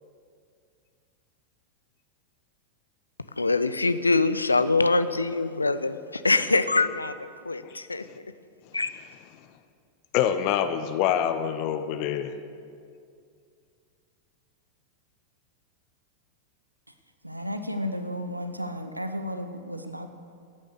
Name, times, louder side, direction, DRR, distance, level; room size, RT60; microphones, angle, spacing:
voice 1, 3.4-7.1 7.4-8.0 8.7-8.9, left 3 dB, 80° left, 13 dB, 0.5 m, -24 dB
voice 2, 10.1-12.3, left 9 dB, 45° left, 10 dB, 0.7 m, -25 dB
voice 3, 17.2-20.1, equal, 85° right, 8 dB, 0.8 m, -33 dB
14.0 x 9.9 x 6.6 m, 2.3 s
figure-of-eight pair, 90°, 0 cm